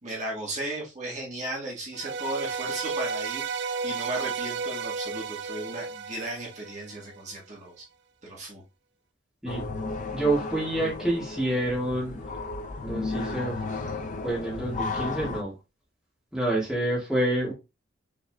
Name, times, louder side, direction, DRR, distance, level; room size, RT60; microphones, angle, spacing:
voice 1, 0.0-7.8 8.2-8.6, right 2 dB, 35° right, -4 dB, 1.5 m, -35 dB
sound 1, 1.9-7.2, right 5 dB, 55° right, 0.4 m, -33 dB
sound 2, 9.5-15.4, left 3 dB, 40° left, 0.5 m, -34 dB
voice 2, 10.1-12.2 12.8-13.6 14.2-15.5 16.3-17.5, right 1 dB, ahead, -6 dB, 1.8 m, -27 dB
5.8 x 3.5 x 2.3 m, 0.27 s
head